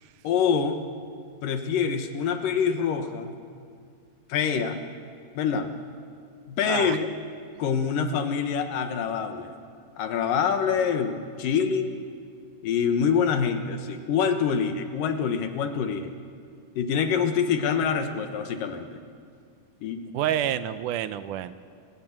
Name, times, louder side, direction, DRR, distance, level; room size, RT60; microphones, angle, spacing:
voice 1, 0.2-0.8 1.4-3.4 4.3-4.8 5.4-5.7 6.5-7.1 7.6-9.5 10.0-12.0 12.6-16.1 16.8-19.0 19.8-20.0, left 6 dB, 75° left, 7 dB, 3.0 m, -25 dB
voice 2, 6.6-7.0 20.1-21.5, right 11 dB, 75° right, 12 dB, 2.1 m, -28 dB
29.0 x 18.0 x 7.4 m, 2.3 s
omnidirectional pair, 3.9 m